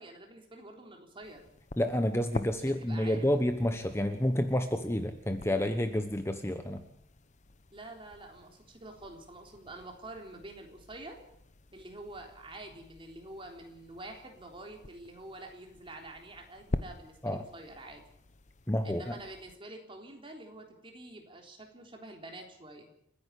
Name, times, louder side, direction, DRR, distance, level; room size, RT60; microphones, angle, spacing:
voice 1, 0.0-1.4 2.7-3.3 7.7-11.2 11.7-18.0 18.8-22.9, right 2 dB, 30° right, 2 dB, 3.8 m, -47 dB
sound 1, 1.2-19.5, left 2 dB, 40° left, 0.9 m, -46 dB
voice 2, 1.8-6.8 17.2-17.5 18.7-19.2, left 1 dB, 15° left, 7 dB, 1.1 m, -29 dB
29.5 x 10.5 x 8.5 m, 0.73 s
head